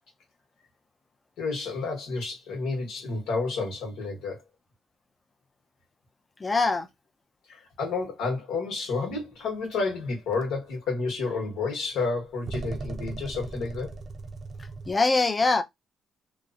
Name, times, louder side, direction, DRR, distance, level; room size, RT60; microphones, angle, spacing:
voice 1, 1.4-4.4 7.5-14.0, left 3 dB, 85° left, 1.0 m, -30 dB
voice 2, 6.4-6.9 14.6-15.6, left 3 dB, 25° left, 0.5 m, -23 dB
sound 1, 10.4-10.5 12.5-14.9, right 3 dB, 45° right, 0.6 m, -37 dB
2.9 x 2.0 x 2.4 m
cardioid pair, 90°, 0 cm